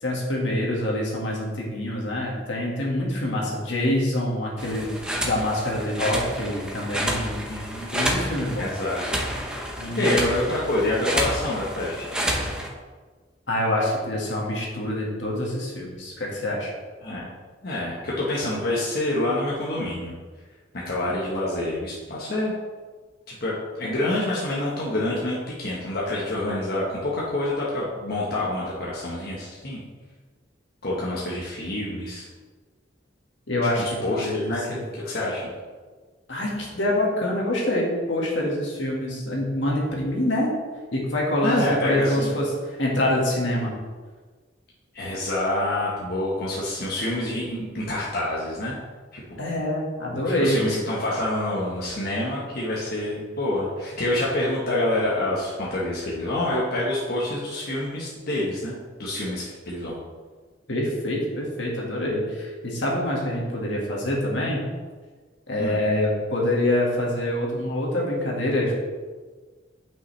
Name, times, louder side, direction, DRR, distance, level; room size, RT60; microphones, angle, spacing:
voice 1, 0.0-4.9 5.2-7.4 7.9-8.7 9.8-10.3 13.5-16.7 33.5-34.8 36.3-40.5 40.9-42.5 42.8-43.7 49.4-50.6 60.7-64.6 65.5-68.7, left 1 dB, 75° left, -3 dB, 1.8 m, -25 dB
sound 1, 4.6-12.7, equal, 5° right, 0.9 m, -29 dB
voice 2, 7.5-8.2 8.6-9.0 10.0-12.0 17.0-17.3 17.6-20.2 20.7-22.5 23.3-29.8 30.8-32.2 33.8-35.5 41.4-42.3 44.9-48.8 49.1-49.4 50.1-60.0 65.6-65.8, left 1 dB, 55° left, -6 dB, 1.3 m, -27 dB
8.6 x 5.6 x 3.3 m, 1.4 s
head